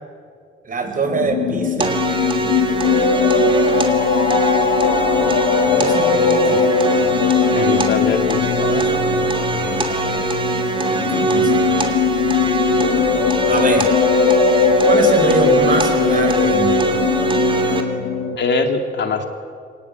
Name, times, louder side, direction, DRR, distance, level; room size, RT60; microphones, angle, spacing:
voice 1, 0.6-2.0 5.7-6.7 8.5-9.0 9.6-10.3 10.9-12.1 13.5-13.9 14.8-17.0, right 4 dB, 45° right, 5 dB, 4.8 m, -23 dB
sound 1, 1.0-18.4, left 6 dB, 90° left, 1.5 m, -19 dB
sound 2, 1.8-17.8, right 4 dB, 25° right, 2.9 m, -22 dB
voice 2, 7.5-8.8 11.1-11.2 18.4-19.3, left 4 dB, 60° left, 6 dB, 2.4 m, -22 dB
23.0 x 19.0 x 8.1 m, 2.2 s
cardioid pair, 90°, 20 cm